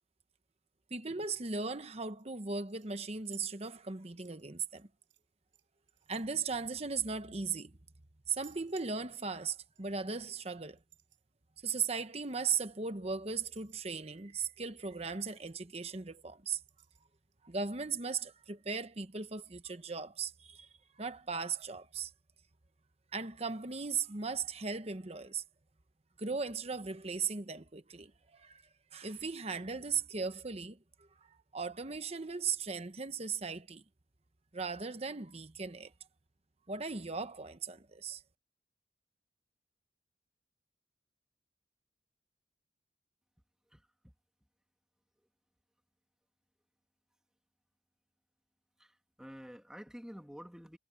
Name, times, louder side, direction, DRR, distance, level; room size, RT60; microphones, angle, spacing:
voice 1, 0.9-4.9 6.1-7.7 8.3-10.8 11.6-16.6 17.4-20.7 21.0-22.1 23.1-25.4 26.2-28.6 28.9-30.8 31.5-33.8 34.5-35.9 36.7-38.2, right 5 dB, 35° right, 1.0 m, -37 dB
sound 1, 2.0-2.3 2.7-3.9 4.2-5.2 5.5-7.6 8.2-9.5 9.8-9.9 10.7-11.2 12.2-12.7 13.5-14.2 14.6-14.7 14.9-15.0 15.2-15.9 16.6-17.4 18.1-18.2, right 12 dB, 85° right, 5.2 m, -61 dB
voice 2, 48.8-50.8, equal, 5° right, 1.8 m, -49 dB
head